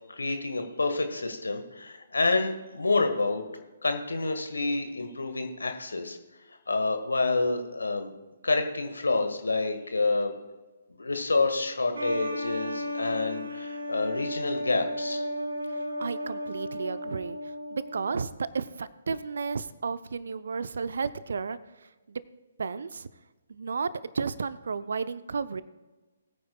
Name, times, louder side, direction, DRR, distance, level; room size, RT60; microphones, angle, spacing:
voice 1, 0.1-3.4 3.8-6.2 6.7-8.1 8.4-10.3 10.9-15.2, left 3 dB, 70° left, 6 dB, 1.5 m, -28 dB
sound 1, 11.9-18.3, equal, 75° right, 1.5 m, -34 dB
voice 2, 15.7-21.6 22.1-22.2 22.6-23.1 23.5-25.6, right 5 dB, 60° right, 15 dB, 0.6 m, -33 dB
20.5 x 9.4 x 2.3 m, 1.2 s
figure-of-eight pair, 130°, 0 cm